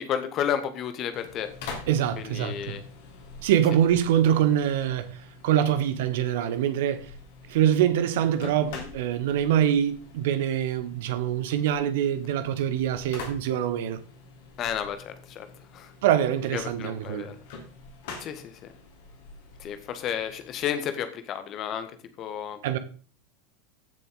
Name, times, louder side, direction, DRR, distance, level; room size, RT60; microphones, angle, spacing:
voice 1, 0.0-1.5 2.2-2.8 8.7-8.9 14.6-15.5 15.7-15.9 16.5-17.4 18.2-18.7 19.6-21.9 22.2-22.6, left 9 dB, 40° left, 1.7 m, -32 dB
sound 1, 1.1-20.7, left 4 dB, 55° left, 3.3 m, -46 dB
voice 2, 1.9-2.8 3.4-5.1 5.4-7.1 7.5-14.0 16.0-17.3 22.6-22.8, right 10 dB, 55° right, 1.3 m, -24 dB
15.5 x 7.0 x 3.9 m
figure-of-eight pair, 80°, 0 cm